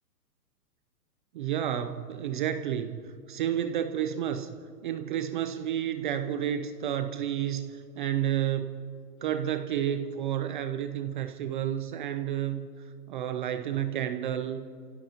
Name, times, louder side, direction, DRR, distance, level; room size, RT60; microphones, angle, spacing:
voice 1, 1.3-4.6 4.8-8.8 9.2-14.6, right 10 dB, 35° right, 9 dB, 0.5 m, -31 dB
27.5 x 16.5 x 2.9 m, 2.4 s
hypercardioid pair, 140°, 48 cm